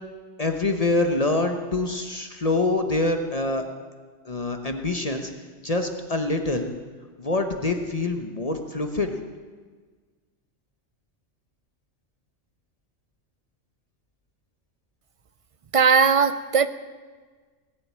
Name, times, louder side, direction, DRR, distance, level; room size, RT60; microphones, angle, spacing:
voice 1, 0.4-3.6 4.2-5.3 5.6-6.7 7.2-9.1, left 2 dB, 30° left, 5 dB, 1.1 m, -25 dB
voice 2, 15.7-16.7, right 5 dB, 55° right, 13 dB, 0.3 m, -18 dB
18.5 x 7.8 x 8.8 m, 1.4 s
omnidirectional pair, 1.3 m